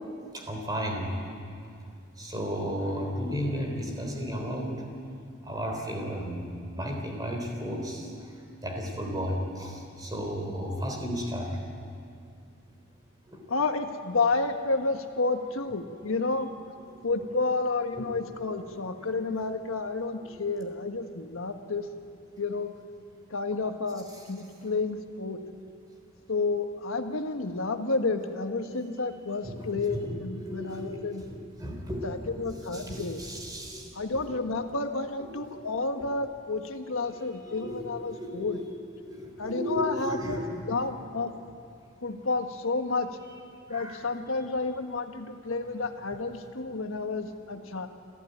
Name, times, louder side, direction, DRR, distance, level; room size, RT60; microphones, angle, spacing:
voice 1, 0.3-1.1 2.2-4.8 5.4-8.1 8.6-11.5 13.3-13.4 29.4-32.1 32.4-34.2 35.3-35.5 37.5-37.8 38.1-38.6 39.0-40.5 43.7-44.0, equal, 20° right, 2 dB, 3.6 m, -34 dB
voice 2, 13.5-16.5 17.0-21.9 22.4-22.7 23.3-25.4 26.3-31.2 32.0-33.2 33.9-38.6 39.4-41.3 42.0-43.1 43.7-47.9, left 3 dB, 90° left, 6 dB, 1.4 m, -30 dB
27.5 x 14.0 x 9.3 m, 2.4 s
head